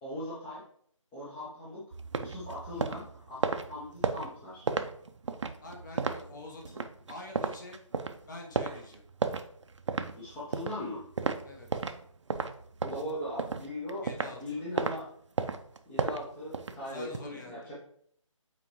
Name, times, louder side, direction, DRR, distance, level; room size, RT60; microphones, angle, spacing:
voice 1, 0.0-0.6 1.1-1.9 2.2-4.6 10.2-11.0 12.8-15.1 15.9-17.7, left 1 dB, 5° left, -8 dB, 0.6 m, -39 dB
sound 1, 1.9-12.0 12.3-14.4 14.8-15.0 15.4-17.2, right 4 dB, 60° right, 0.6 m, -33 dB
voice 2, 5.6-7.8 8.3-9.0 11.4-11.7 14.0-14.6 16.8-17.7, left 2 dB, 35° left, 1 dB, 1.2 m, -46 dB
7.6 x 4.3 x 3.0 m, 0.64 s
figure-of-eight pair, 160°, 17 cm